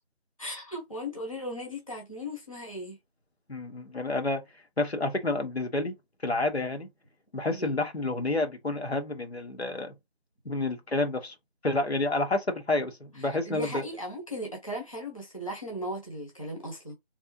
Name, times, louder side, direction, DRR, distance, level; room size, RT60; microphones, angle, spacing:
voice 1, 0.4-3.0 7.5-7.8 13.2-16.9, equal, 30° left, 0.8 m, -37 dB
voice 2, 3.5-4.4 4.8-5.9 6.2-6.9 7.3-9.9 10.4-11.3 11.6-13.8, left 2 dB, 75° left, 1.4 m, -29 dB
3.6 x 3.4 x 2.7 m
figure-of-eight pair, 175°, 32 cm